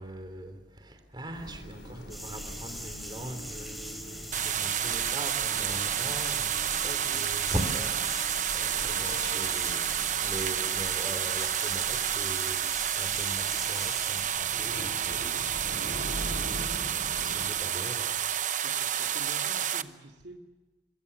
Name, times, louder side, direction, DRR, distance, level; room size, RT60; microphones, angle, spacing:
voice 1, 0.0-6.6 6.8-9.9 10.2-16.4 17.2-18.1, right 1 dB, 25° right, 7 dB, 3.3 m, -40 dB
sound 1, 1.3-17.5, equal, 70° left, 5.3 m, -43 dB
sound 2, 2.1-14.2, equal, ahead, 3.4 m, -42 dB
sound 3, 4.3-19.8, right 10 dB, 45° right, 0.8 m, -30 dB
voice 2, 6.8-7.3 8.7-9.3 18.6-20.4, right 1 dB, 75° right, 3 dB, 2.2 m, -50 dB
24.5 x 23.0 x 7.1 m, 1.3 s
head